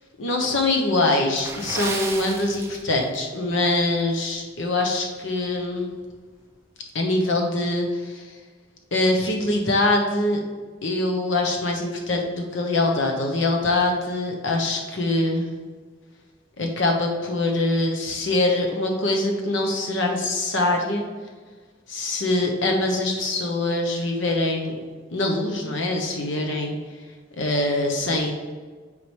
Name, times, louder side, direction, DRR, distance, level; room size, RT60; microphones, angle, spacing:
voice 1, 0.2-5.9 6.9-8.3 8.9-10.4 10.8-15.4 16.6-21.0 21.9-24.8 25.1-26.8 27.4-28.3, left 2 dB, 65° left, 2 dB, 1.0 m, -23 dB
Water / Splash splatter, 1.3-3.2 3.5-3.8 4.3-4.5 5.0-5.1, right 3 dB, 15° right, 0.6 m, -33 dB
8.4 x 4.8 x 3.3 m, 1.5 s
head